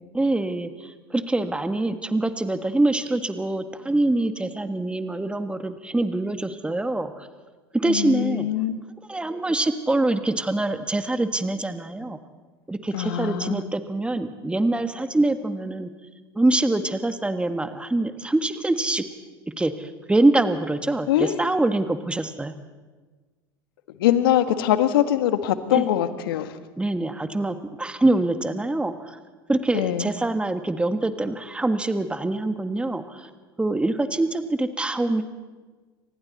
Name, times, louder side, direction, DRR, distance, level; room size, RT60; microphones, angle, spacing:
voice 1, 0.1-7.3 7.7-8.5 9.1-12.2 12.7-15.9 16.3-19.0 19.6-22.5 25.7-25.8 26.8-29.2 29.5-33.3 33.6-35.2, right 2 dB, 10° right, 8 dB, 1.6 m, -24 dB
voice 2, 7.8-8.8 12.9-13.6 21.1-21.5 24.0-26.6 29.7-30.1, left 12 dB, 70° left, 10 dB, 1.6 m, -23 dB
30.0 x 25.5 x 4.2 m, 1.3 s
hypercardioid pair, 75°, 12 cm